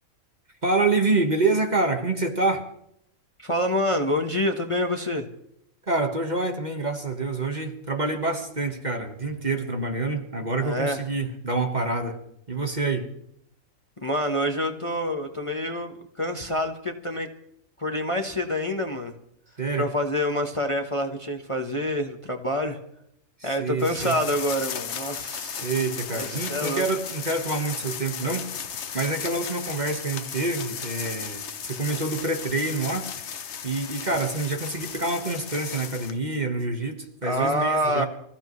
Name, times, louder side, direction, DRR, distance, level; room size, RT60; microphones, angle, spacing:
voice 1, 0.6-2.6 5.9-12.2 12.5-13.1 19.6-19.9 23.4-24.2 25.6-28.5 28.9-33.1 33.6-38.1, right 3 dB, 30° right, 4 dB, 1.6 m, -27 dB
voice 2, 3.4-5.3 10.6-11.0 14.0-17.3 17.8-19.1 19.8-22.8 23.4-25.7 26.1-26.8 37.2-38.1, left 1 dB, 25° left, 4 dB, 1.2 m, -27 dB
sound 1, 23.8-36.2, left 7 dB, 55° left, 1.1 m, -35 dB
26.0 x 15.0 x 3.2 m, 0.75 s
omnidirectional pair, 1.5 m